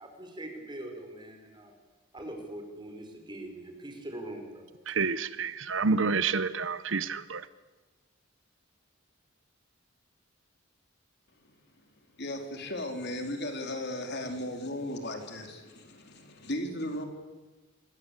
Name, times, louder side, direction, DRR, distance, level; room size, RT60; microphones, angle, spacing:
voice 1, 0.0-1.7 2.1-4.7, right 1 dB, 20° right, 4 dB, 5.2 m, -42 dB
voice 2, 4.9-7.5, right 4 dB, 65° right, 15 dB, 0.9 m, -29 dB
voice 3, 12.2-17.0, left 1 dB, 55° left, 5 dB, 4.0 m, -36 dB
27.0 x 23.0 x 8.2 m, 1.2 s
head